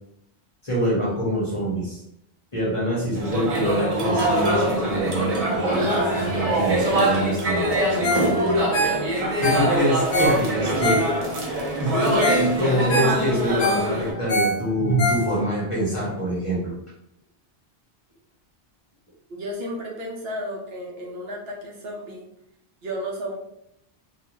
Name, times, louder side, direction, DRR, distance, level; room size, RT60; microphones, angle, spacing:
voice 1, 0.6-2.0 2.5-8.7 9.4-11.0 11.8-16.7, equal, 35° left, -6 dB, 0.7 m, -25 dB
sound 1, 3.1-14.1, right 1 dB, 40° right, 0.6 m, -23 dB
Ringtone, 8.0-8.3 8.6-11.5 11.9-12.0 12.2-12.5 12.8-15.6 16.1-16.2, equal, 85° left, 1.0 m, -25 dB
voice 2, 19.3-22.3 22.8-23.3, equal, 65° right, -3 dB, 0.8 m, -33 dB
2.4 x 2.3 x 2.9 m, 0.79 s
omnidirectional pair, 1.2 m